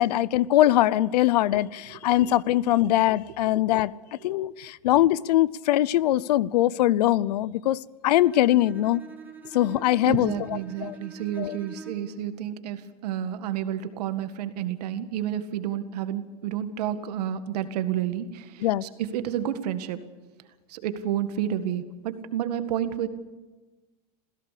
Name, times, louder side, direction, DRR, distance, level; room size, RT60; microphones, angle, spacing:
voice 1, 0.0-3.9 4.2-9.0 9.5-11.0 11.4-11.6 18.6-18.8, left 14 dB, 80° left, 0.7 m, -22 dB
Bowed string instrument, 8.1-12.2, right 3 dB, 10° right, 2.5 m, -45 dB
voice 2, 10.1-20.0 20.7-23.1, right 10 dB, 75° right, 1.9 m, -30 dB
27.0 x 16.0 x 6.8 m
supercardioid pair, 120°, 21 cm